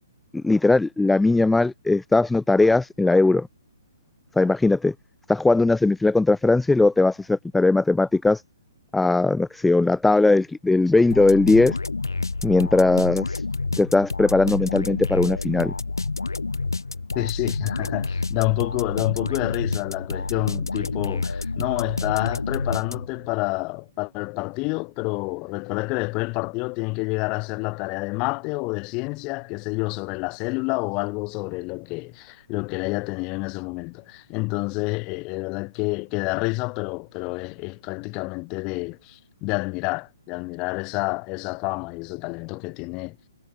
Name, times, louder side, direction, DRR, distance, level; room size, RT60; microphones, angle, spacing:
voice 1, 0.3-3.5 4.4-4.9 5.3-8.4 8.9-11.8 12.4-13.4 13.8-15.7, left 2 dB, 5° left, 0.5 m, -19 dB
sound 1, 11.1-23.3, left 3 dB, 75° left, 1.6 m, -29 dB
voice 2, 17.1-43.2, left 28 dB, 25° left, 2.6 m, -28 dB
figure-of-eight pair, 130°, 2 cm